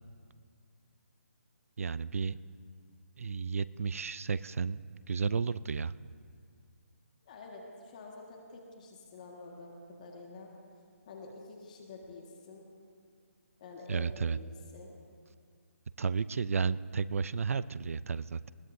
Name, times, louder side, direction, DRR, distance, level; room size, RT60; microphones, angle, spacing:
voice 1, 1.8-2.4 3.2-5.9 13.9-14.4 16.0-18.5, right 5 dB, 65° right, 18 dB, 0.4 m, -32 dB
voice 2, 7.2-10.5 11.1-12.7 13.6-14.9, left 3 dB, 30° left, 0 dB, 1.6 m, -48 dB
20.5 x 17.5 x 2.6 m, 2.1 s
hypercardioid pair, 170°, 8 cm